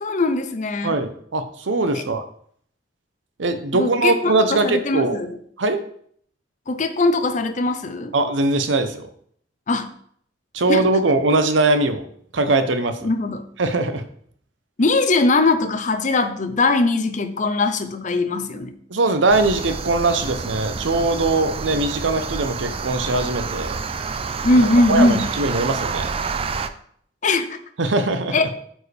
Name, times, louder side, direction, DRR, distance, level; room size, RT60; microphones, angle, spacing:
voice 1, 0.0-1.0 1.9-2.0 3.7-5.4 6.7-8.1 9.7-9.9 10.7-11.0 13.0-13.4 14.8-18.7 24.4-25.3 27.2-27.6 28.3-28.5, left 2 dB, 40° left, 9 dB, 0.6 m, -20 dB
voice 2, 0.8-2.2 3.4-5.2 5.6-5.8 8.1-9.1 10.5-12.0 12.3-13.1 13.6-14.0 18.9-23.8 24.5-26.1 27.8-28.4, right 2 dB, 85° right, 9 dB, 0.7 m, -21 dB
sound 1, 19.3-26.7, right 5 dB, 30° right, 0.4 m, -28 dB
8.5 x 4.6 x 3.4 m, 0.63 s
head